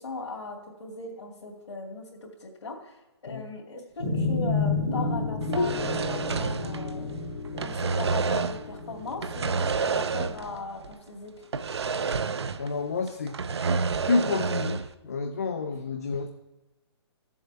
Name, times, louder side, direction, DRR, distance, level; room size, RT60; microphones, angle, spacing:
voice 1, 0.0-7.1 7.5-11.5, left 3 dB, 80° left, -3 dB, 2.4 m, -38 dB
sound 1, 4.0-10.6, left 3 dB, 65° left, 2.1 m, -31 dB
sound 2, 5.4-7.2 7.4-8.7 9.2-10.6 10.8-10.9 11.5-12.8 13.1-14.9, right 5 dB, 70° right, 0.6 m, -29 dB
voice 2, 12.6-13.4 14.0-16.3, left 4 dB, 35° left, 5 dB, 0.6 m, -29 dB
15.0 x 7.2 x 3.4 m, 1.1 s
hypercardioid pair, 180°, 14 cm